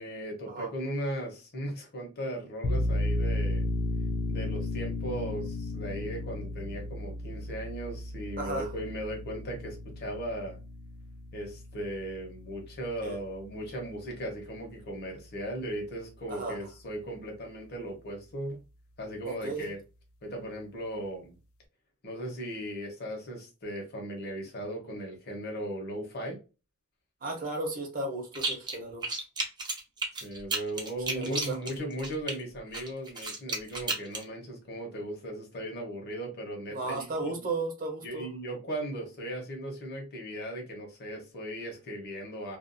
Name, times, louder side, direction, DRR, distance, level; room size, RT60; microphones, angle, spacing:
voice 1, 0.0-3.7 4.3-10.6 11.3-18.6 19.0-19.8 20.2-21.4 22.0-26.4 30.2-37.4 38.0-42.6, right 1 dB, 50° left, 0.9 m, -37 dB
sound 1, 2.6-13.9, left 2 dB, 75° left, 0.4 m, -34 dB
voice 2, 8.4-8.7 13.0-13.2 16.3-16.6 19.2-19.7 27.2-29.0 31.1-31.6 36.7-38.3, right 2 dB, 40° right, 0.8 m, -34 dB
sound 2, 28.3-28.8 29.0-32.3 32.7-34.2, right 3 dB, 20° right, 0.5 m, -33 dB
2.5 x 2.3 x 2.5 m
head